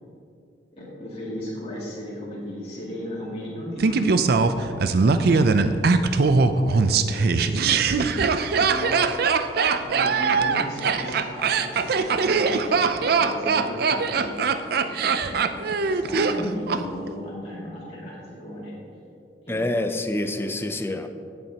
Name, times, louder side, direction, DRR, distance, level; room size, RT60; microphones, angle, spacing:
voice 1, 0.7-5.0 6.5-9.0 9.8-14.4 14.7-15.4 15.8-18.8 19.4-19.8, equal, 35° left, -8 dB, 2.4 m, -36 dB
Laughter, 3.8-16.8 17.1-17.2, right 4 dB, 60° right, 0.4 m, -21 dB
voice 2, 19.5-21.1, left 1 dB, 15° left, 8 dB, 0.5 m, -27 dB
16.5 x 7.3 x 2.9 m, 2.5 s
head